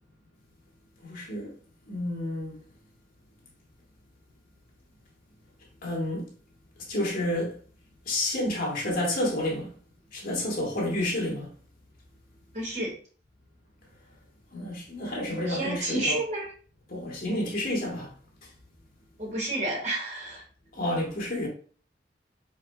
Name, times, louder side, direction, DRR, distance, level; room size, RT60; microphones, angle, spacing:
voice 1, 1.0-1.5 1.9-2.6 5.8-6.3 6.9-7.6 8.0-9.7 10.1-11.5 14.5-16.2 16.9-18.1 20.7-21.5, left 1 dB, 55° left, 1.7 m, -30 dB
voice 2, 12.5-12.9 15.5-16.5 19.2-20.4, right 1 dB, 45° right, 1.7 m, -30 dB
4.8 x 4.3 x 2.3 m
head